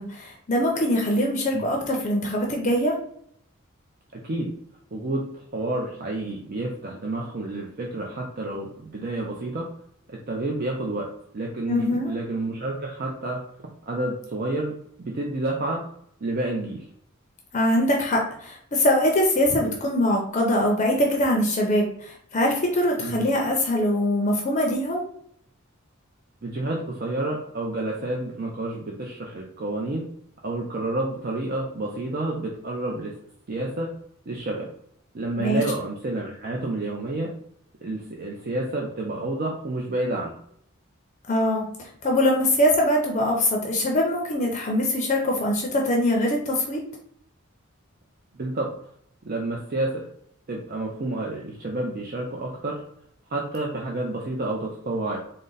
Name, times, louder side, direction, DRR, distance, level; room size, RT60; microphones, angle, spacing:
voice 1, 0.0-3.0 11.7-12.1 17.5-25.0 35.4-35.6 41.3-41.7 42.0-46.8, left 1 dB, 35° left, 0 dB, 0.6 m, -23 dB
voice 2, 4.1-4.5 4.9-9.6 10.1-11.1 11.3-13.4 13.9-15.8 16.2-16.9 23.0-23.2 26.4-30.0 30.4-33.1 33.5-33.9 34.3-34.7 35.1-37.3 37.8-40.3 48.3-48.7 49.2-50.1 50.5-52.8 53.3-55.2, right 2 dB, 45° right, -1 dB, 0.5 m, -29 dB
3.8 x 2.1 x 3.8 m, 0.66 s
head